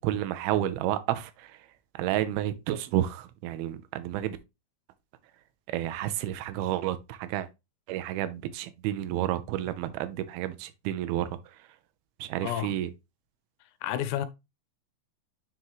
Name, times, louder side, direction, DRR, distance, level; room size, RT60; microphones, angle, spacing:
voice 1, 0.0-1.6 2.0-4.4 5.7-7.5 7.9-11.4 12.2-12.9, right 13 dB, 80° right, 2.2 m, -30 dB
voice 2, 12.4-12.8 13.8-14.3, left 12 dB, 80° left, 2.8 m, -30 dB
9.5 x 3.7 x 3.1 m
omnidirectional pair, 5.2 m